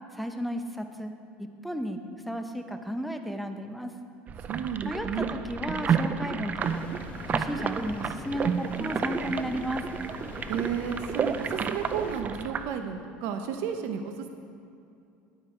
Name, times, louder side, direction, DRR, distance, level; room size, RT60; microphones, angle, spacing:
voice 1, 0.1-1.1 1.4-2.0 2.3-3.9 4.8-6.9 7.3-9.9, equal, ahead, 6 dB, 0.8 m, -34 dB
sound 1, 4.3-12.7, right 7 dB, 35° right, 0.5 m, -31 dB
voice 2, 4.4-5.3 10.5-14.3, right 7 dB, 70° right, 6 dB, 0.7 m, -32 dB
sound 2, 6.6-12.2, left 4 dB, 35° left, 1.1 m, -44 dB
10.0 x 8.7 x 4.4 m, 2.5 s
supercardioid pair, 110°, 5 cm